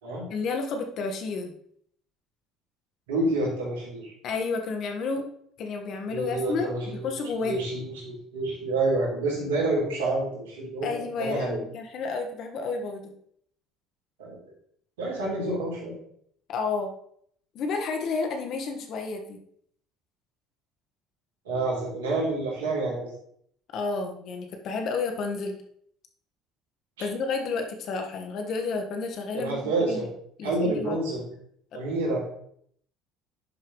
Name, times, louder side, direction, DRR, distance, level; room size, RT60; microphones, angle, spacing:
voice 1, 0.3-1.5 4.2-5.3 5.6-7.6 10.8-13.1 16.5-16.9 17.5-19.4 23.7-25.6 27.0-30.1 30.4-31.0 31.7-31.8, left 4 dB, 60° left, 4 dB, 1.5 m, -31 dB
voice 2, 3.1-4.1 6.1-7.1 7.4-11.6 14.2-14.4 15.0-16.0 21.5-23.1 29.4-30.1 30.4-31.2 31.7-32.2, right 2 dB, 90° right, -4 dB, 3.5 m, -28 dB
10.5 x 5.8 x 3.2 m, 0.66 s
hypercardioid pair, 70°, 0 cm